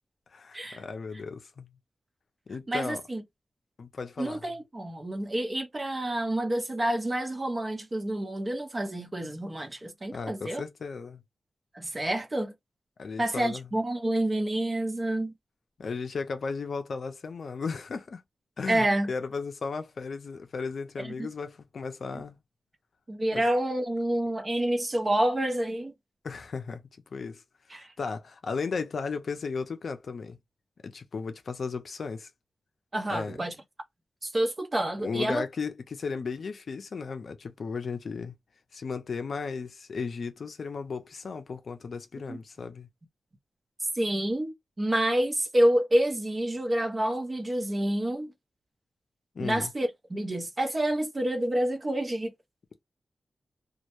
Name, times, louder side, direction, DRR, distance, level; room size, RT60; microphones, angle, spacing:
voice 1, 0.3-1.7 2.5-3.0 3.8-4.4 10.1-11.2 13.0-13.7 15.8-18.2 18.6-22.4 23.3-23.4 26.2-26.8 27.1-27.4 27.7-30.4 30.8-32.3 33.1-33.4 35.0-38.3 38.7-42.9 49.3-49.7, left 5 dB, 65° left, 0.4 m, -35 dB
voice 2, 2.7-3.2 4.2-10.6 11.7-12.5 13.2-15.3 18.7-19.1 21.0-21.3 22.1-22.2 23.1-25.9 27.7-27.9 32.9-33.5 34.2-35.4 42.3-42.4 44.0-48.3 49.4-52.3, right 1 dB, 30° right, 0.6 m, -28 dB
2.2 x 2.0 x 2.9 m
wide cardioid pair, 85°, 0 cm